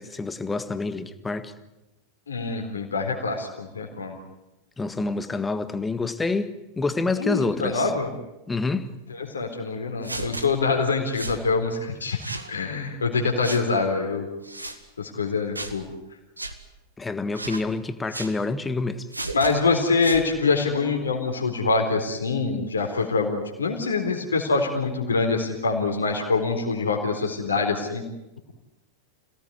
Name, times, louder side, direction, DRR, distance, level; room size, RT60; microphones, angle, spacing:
voice 1, 0.0-1.5 4.8-7.9 8.5-8.9 17.0-19.1, left 3 dB, 10° left, 1.6 m, -27 dB
voice 2, 2.3-4.2 7.2-8.1 9.3-12.2 12.5-14.3 15.0-15.9 19.3-28.0, left 4 dB, 70° left, 4.0 m, -25 dB
sound 1, 10.0-10.5 11.1-11.4 12.2-12.5 13.4-13.6 14.4-14.8 15.5-15.8 16.4-16.5 17.3-17.7 18.1-18.3 19.1-19.5 20.0-20.3, right 2 dB, 85° right, 1.8 m, -34 dB
27.0 x 17.5 x 9.5 m
figure-of-eight pair, 90°, 0 cm